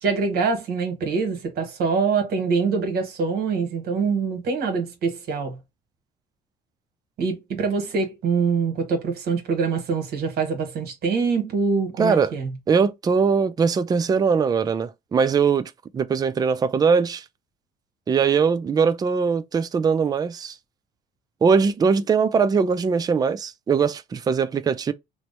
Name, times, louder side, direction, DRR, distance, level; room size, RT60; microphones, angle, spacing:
voice 1, 0.0-5.6 7.2-12.5, right 5 dB, 65° right, 1.3 m, -24 dB
voice 2, 12.0-12.3 12.7-17.2 18.1-20.6 21.4-24.9, right 5 dB, 25° right, 0.4 m, -21 dB
3.1 x 2.0 x 4.1 m
cardioid pair, 110°, 17 cm